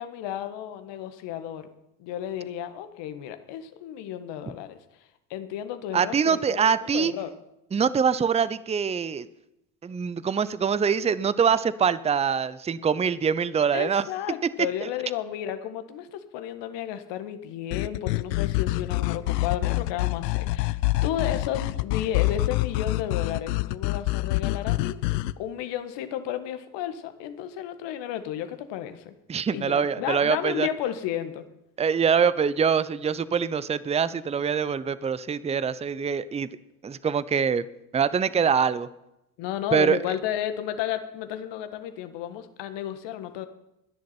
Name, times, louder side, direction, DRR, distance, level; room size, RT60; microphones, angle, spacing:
voice 1, 0.0-1.7 2.0-4.8 5.3-7.3 13.7-25.0 25.4-29.1 29.5-31.4 39.4-43.5, left 11 dB, 60° left, 9 dB, 1.7 m, -33 dB
voice 2, 5.9-7.1 7.7-9.3 9.8-14.1 29.3-30.7 31.8-36.5 36.8-37.6 37.9-38.9 39.7-40.0, right 6 dB, 15° right, 17 dB, 0.6 m, -24 dB
sound 1, 17.7-25.3, left 19 dB, 75° left, 0.6 m, -26 dB
23.0 x 10.5 x 4.4 m, 0.87 s
hypercardioid pair, 70°, 49 cm